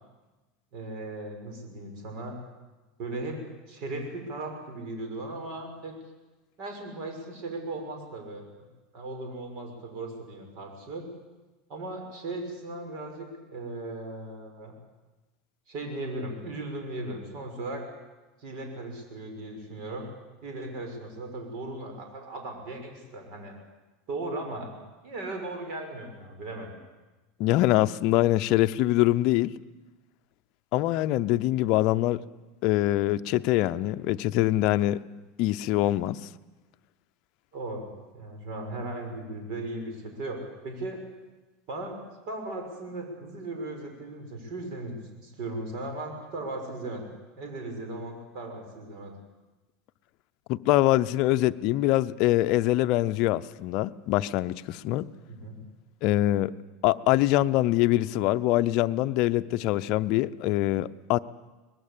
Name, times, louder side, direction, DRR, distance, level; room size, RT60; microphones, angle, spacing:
voice 1, 0.7-2.4 3.0-3.4 3.7-6.0 6.6-8.7 8.9-11.1 11.7-14.7 15.7-17.9 18.4-20.1 20.4-23.5 24.1-24.7 25.0-26.7 37.5-41.0 41.7-42.0 42.3-47.1 47.4-49.1 55.3-55.6, right 2 dB, 50° right, 6.1 m, -37 dB
voice 2, 27.4-29.5 30.7-32.2 32.6-35.0 35.4-36.2 50.5-55.1 56.0-56.5 56.8-61.2, left 16 dB, 50° left, 0.7 m, -24 dB
23.5 x 20.5 x 8.5 m
supercardioid pair, 150°, 0 cm